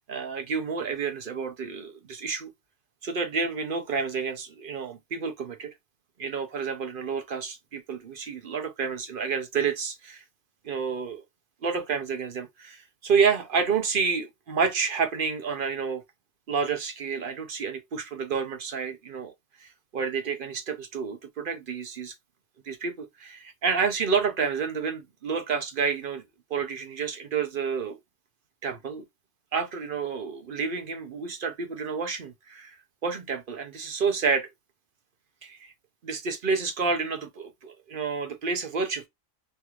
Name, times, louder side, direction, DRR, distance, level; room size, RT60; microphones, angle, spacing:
voice 1, 0.1-2.5 3.0-5.7 6.2-10.2 10.6-11.2 11.6-16.0 16.5-19.3 19.6-22.1 22.7-26.2 26.5-28.0 28.6-29.0 29.5-32.8 33.0-34.5 35.4-35.7 36.0-39.1, right 5 dB, 55° right, 0.6 m, -29 dB
3.3 x 3.0 x 2.3 m
omnidirectional pair, 1.4 m